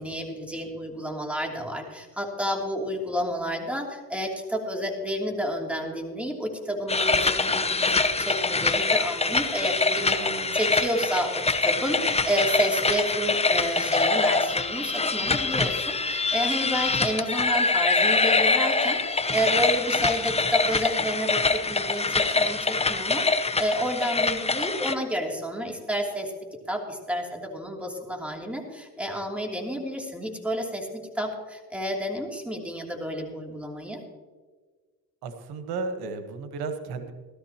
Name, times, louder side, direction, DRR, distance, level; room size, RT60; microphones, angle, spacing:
voice 1, 0.0-10.2 10.5-34.0, equal, 5° right, 0 dB, 2.9 m, -30 dB
sound 1, 6.9-24.9, left 3 dB, 15° left, 0.8 m, -24 dB
voice 2, 10.1-10.6 12.0-12.1 35.2-37.1, right 4 dB, 90° right, 8 dB, 1.2 m, -34 dB
17.0 x 13.5 x 2.9 m, 1.4 s
cardioid pair, 80°, 37 cm